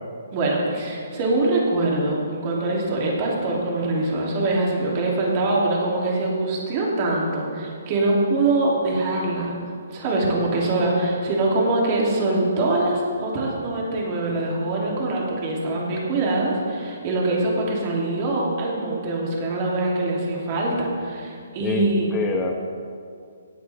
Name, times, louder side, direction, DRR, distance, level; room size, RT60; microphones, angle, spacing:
voice 1, 0.3-9.6 9.9-22.1, right 2 dB, 35° right, -3 dB, 2.9 m, -23 dB
voice 2, 21.6-22.5, left 4 dB, 20° left, 3 dB, 0.9 m, -26 dB
17.5 x 8.4 x 3.5 m, 2.3 s
hypercardioid pair, 140°, 0 cm